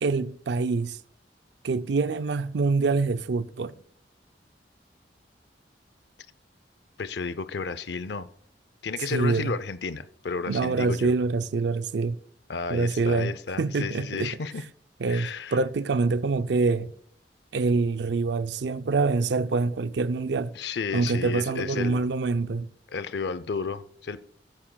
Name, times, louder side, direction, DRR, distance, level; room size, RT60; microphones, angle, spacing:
voice 1, 0.0-1.0 1.6-3.7 9.1-9.5 10.5-12.2 12.7-14.3 15.0-16.9 17.5-20.5 20.9-22.7, right 3 dB, 75° right, 0.5 m, -25 dB
voice 2, 7.0-8.3 8.8-11.1 12.5-14.6 15.1-15.6 20.5-22.0 22.9-24.3, left 4 dB, 70° left, 0.6 m, -32 dB
14.5 x 11.5 x 2.3 m
head